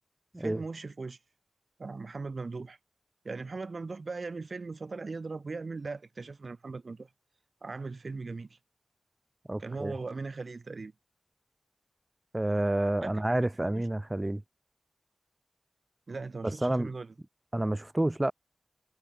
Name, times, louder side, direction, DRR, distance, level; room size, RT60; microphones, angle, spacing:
voice 1, 0.4-1.2 1.8-2.8 3.2-7.1 7.6-8.6 9.6-10.9 13.0-13.2 13.7-13.8 16.1-17.1, right 3 dB, 55° right, 3.6 m, -39 dB
voice 2, 9.5-9.9 12.3-14.4 16.4-16.9 17.5-18.3, right 1 dB, 20° right, 2.4 m, -29 dB
wide cardioid pair, 90°, 0 cm